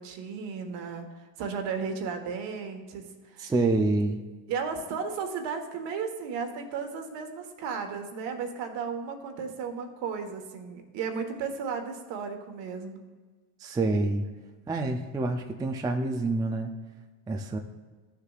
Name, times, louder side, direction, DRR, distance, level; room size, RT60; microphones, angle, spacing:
voice 1, 0.0-3.5 4.5-13.1, right 5 dB, 55° right, 5 dB, 1.5 m, -34 dB
voice 2, 3.4-4.2 13.6-14.2 14.7-16.7 17.3-17.6, right 2 dB, 10° right, 4 dB, 0.4 m, -27 dB
13.5 x 6.7 x 2.4 m, 1.4 s
supercardioid pair, 100°, 50 cm